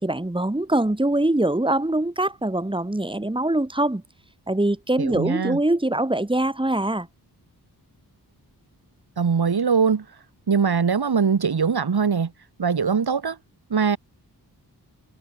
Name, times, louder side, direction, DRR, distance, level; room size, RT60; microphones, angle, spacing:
voice 1, 0.0-4.0 4.5-7.1, right 1 dB, 10° right, 4.9 m, -23 dB
voice 2, 5.0-5.6 9.2-10.1 10.5-12.3 12.6-13.4 13.7-14.0, right 6 dB, 70° right, 7.3 m, -21 dB
wide cardioid pair, 110°, 40 cm